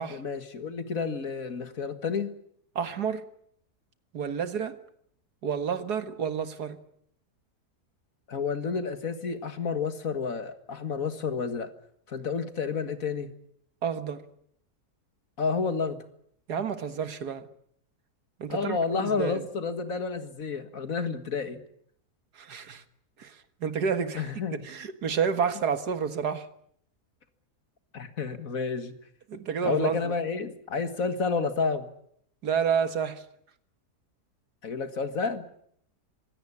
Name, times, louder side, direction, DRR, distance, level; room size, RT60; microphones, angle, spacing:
voice 1, 0.1-2.3 8.3-11.7 12.1-13.3 15.4-16.0 18.5-21.6 24.2-24.7 27.9-28.9 29.6-31.9 34.6-35.5, left 5 dB, 60° left, 2.1 m, -30 dB
voice 2, 2.8-3.3 4.1-4.8 5.4-6.8 13.8-14.2 16.5-17.5 18.4-19.4 22.4-22.8 23.2-24.3 24.6-26.5 29.3-30.1 32.4-33.3, right 7 dB, 85° right, 2.1 m, -30 dB
24.5 x 17.0 x 9.7 m
omnidirectional pair, 1.7 m